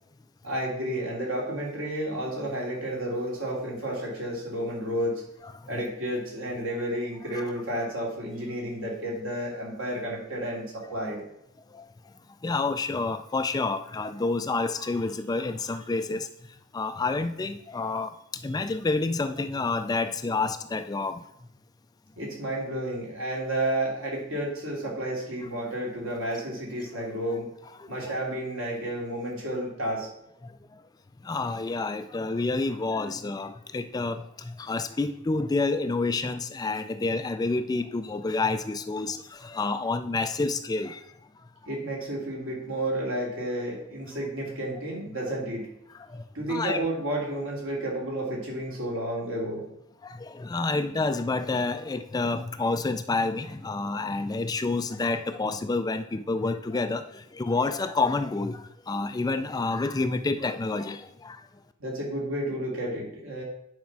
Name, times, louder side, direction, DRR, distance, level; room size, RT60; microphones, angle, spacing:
voice 1, 0.4-5.2 5.7-11.2 22.2-27.5 27.9-30.1 41.7-45.7 46.3-49.6 61.8-63.4, right 1 dB, 70° right, -2 dB, 2.8 m, -31 dB
voice 2, 12.4-16.3 16.7-18.1 18.4-21.2 27.8-27.9 31.2-41.0 46.1-46.2 46.5-46.8 50.0-61.4, left 3 dB, 20° left, 9 dB, 0.3 m, -29 dB
9.4 x 4.4 x 6.0 m, 0.77 s
head